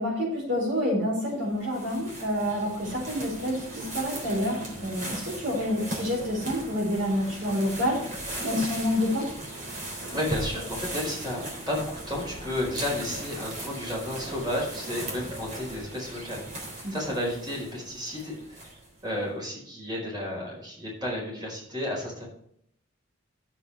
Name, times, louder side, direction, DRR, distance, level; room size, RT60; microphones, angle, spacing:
voice 1, 0.0-8.0 8.4-9.3 16.8-16.9, left 1 dB, 65° right, -2 dB, 4.4 m, -28 dB
sound 1, 1.2-19.0, right 1 dB, 40° right, 3.5 m, -38 dB
voice 2, 10.1-18.6 19.0-22.2, left 1 dB, 20° right, -3 dB, 4.9 m, -32 dB
13.0 x 7.9 x 3.5 m, 0.69 s
head